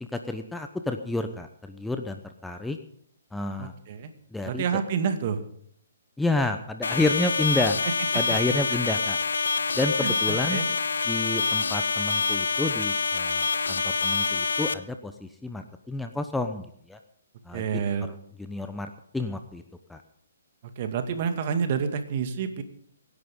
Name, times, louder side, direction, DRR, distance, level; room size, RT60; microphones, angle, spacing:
voice 1, 0.0-2.8 3.3-3.7 4.3-4.6 6.2-7.8 8.1-9.2 9.7-10.6 11.0-17.0 17.4-17.6 18.1-19.6 19.9-20.0, left 2 dB, 5° left, 6 dB, 0.9 m, -30 dB
voice 2, 3.6-4.1 4.5-5.4 8.3-8.4 10.0-10.7 17.5-18.1 20.8-22.6, right 6 dB, 45° right, 8 dB, 2.1 m, -28 dB
sound 1, 6.8-14.7, left 4 dB, 75° left, 0.9 m, -26 dB
25.0 x 11.0 x 3.8 m, 0.64 s
figure-of-eight pair, 130°, 0 cm